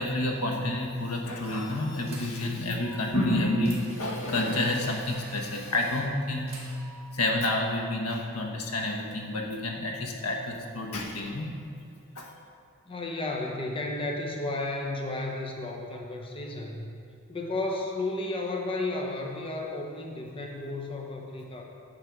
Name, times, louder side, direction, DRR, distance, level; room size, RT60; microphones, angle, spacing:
voice 1, 0.0-6.5 7.1-11.5 12.2-12.3, left 1 dB, 85° left, 1 dB, 1.2 m, -29 dB
sound 1, 1.4-2.4 2.8-6.0 6.5-7.1, right 2 dB, 30° right, 1.8 m, -47 dB
voice 2, 12.9-16.9 17.3-21.6, left 2 dB, 25° left, 1 dB, 0.7 m, -33 dB
9.4 x 6.5 x 4.6 m, 2.4 s
head